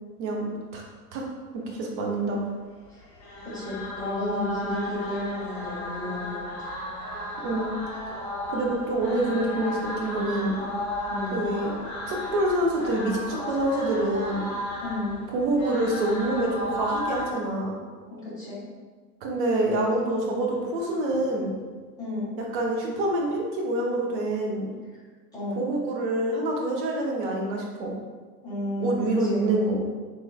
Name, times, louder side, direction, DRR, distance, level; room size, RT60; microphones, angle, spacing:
voice 1, 0.2-0.8 1.1-1.2 1.5-2.4 7.4-7.7 8.5-10.5 11.3-11.7 12.1-14.5 15.3-17.8 19.2-21.5 22.5-24.7 25.6-27.9 28.8-29.8, right 1 dB, 30° right, -1 dB, 0.6 m, -26 dB
sound 1, 3.0-17.3, left 1 dB, 25° left, 0.9 m, -34 dB
voice 2, 3.4-6.7 11.1-11.5 14.8-15.2 18.0-18.6 22.0-22.4 25.3-25.6 28.4-29.6, left 1 dB, 10° left, -10 dB, 1.4 m, -32 dB
3.7 x 3.1 x 2.2 m, 1.5 s
figure-of-eight pair, 95°, 49 cm